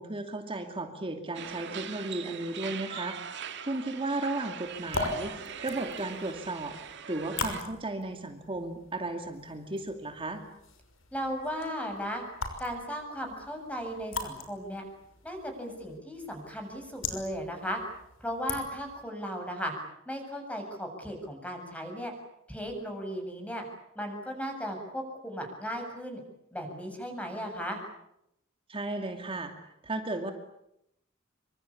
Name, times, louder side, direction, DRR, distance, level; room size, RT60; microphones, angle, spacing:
voice 1, 0.0-3.2 3.6-5.3 5.6-10.4 28.7-29.5 29.8-30.3, right 2 dB, 25° right, 5 dB, 2.6 m, -35 dB
sound 1, 1.3-7.6, right 7 dB, 60° right, 2.5 m, -41 dB
sound 2, 4.6-19.0, left 3 dB, 75° left, 6.0 m, -41 dB
voice 2, 11.1-12.2 12.6-14.8 15.2-17.8 18.2-19.7 20.1-22.1 22.5-23.6 24.0-26.2 26.5-27.8, equal, 5° left, 3 dB, 7.3 m, -36 dB
27.0 x 25.0 x 8.6 m, 0.80 s
head